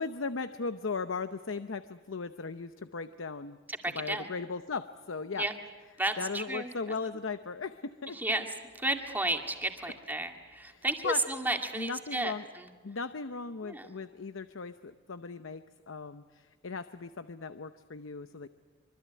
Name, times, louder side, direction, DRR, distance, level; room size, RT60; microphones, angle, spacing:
voice 1, 0.0-3.6 3.9-5.5 6.2-8.2 10.7-11.2 11.7-12.5 12.8-18.5, left 4 dB, 90° left, 10 dB, 0.8 m, -37 dB
voice 2, 3.7-4.3 5.3-5.5 6.0-6.7 8.1-8.5 8.8-12.7 13.6-13.9, right 2 dB, 10° right, 4 dB, 2.2 m, -33 dB
25.5 x 24.0 x 9.5 m, 1.4 s
head